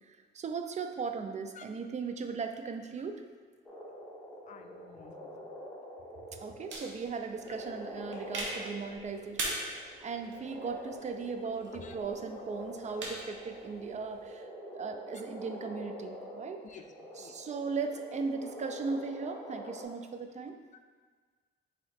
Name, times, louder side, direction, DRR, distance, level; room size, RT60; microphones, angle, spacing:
voice 1, 0.1-3.2 6.4-14.5 14.7-16.6 17.1-20.6, right 5 dB, 35° right, 6 dB, 0.4 m, -38 dB
sound 1, 3.7-19.8, equal, 5° left, 1.3 m, -45 dB
voice 2, 4.5-5.4 11.8-12.0 16.6-16.8 17.2-17.3, left 6 dB, 40° left, 6 dB, 0.4 m, -51 dB
sound 2, 6.7-14.3, right 2 dB, 70° right, 0.9 m, -42 dB
4.0 x 2.9 x 4.2 m, 1.5 s
cardioid pair, 90°, 20 cm